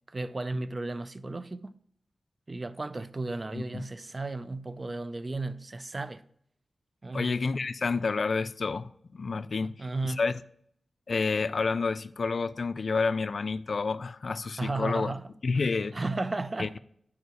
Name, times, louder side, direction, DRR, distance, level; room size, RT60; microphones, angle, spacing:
voice 1, 0.1-1.8 2.5-6.2 7.0-7.4 9.6-10.2 14.6-15.3 15.9-16.8, right 2 dB, 35° right, 0.4 m, -34 dB
voice 2, 3.5-3.8 7.1-9.7 10.0-10.3 11.1-15.1 15.4-15.9 16.6-16.8, left 4 dB, 60° left, 0.3 m, -29 dB
8.1 x 4.8 x 4.7 m
cardioid pair, 65°, 0 cm